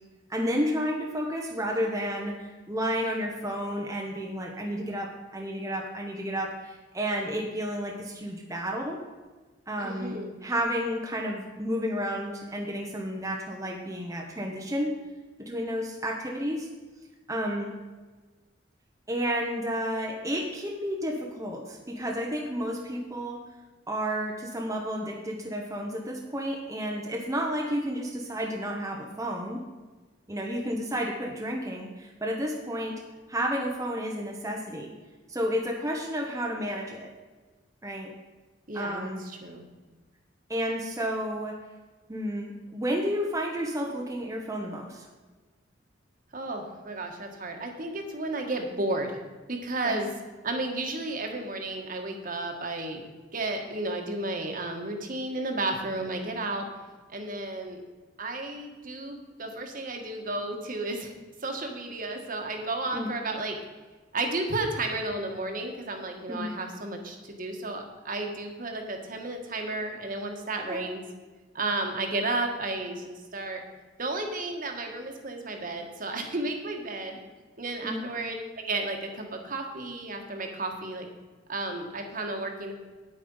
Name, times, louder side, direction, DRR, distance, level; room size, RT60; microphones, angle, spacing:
voice 1, 0.3-9.0 9.7-14.9 15.4-16.7 17.3-17.7 19.1-23.4 23.9-29.6 30.3-33.0 33.3-34.9 35.3-37.1 37.8-38.1 38.7-39.2 40.5-41.6 42.1-45.1 49.8-50.0 62.9-63.1 66.3-66.5 70.7-70.8 77.8-78.1, equal, 15° right, 0 dB, 0.9 m, -31 dB
voice 2, 9.8-10.4 38.7-39.6 46.3-49.2 49.5-50.1 50.4-53.0 53.3-56.6 57.1-57.8 58.2-61.1 61.4-63.6 64.1-71.0 71.5-73.6 74.0-77.2 77.6-81.1 81.5-82.7, right 2 dB, 50° right, 3 dB, 1.5 m, -33 dB
9.4 x 8.7 x 5.5 m, 1.3 s
head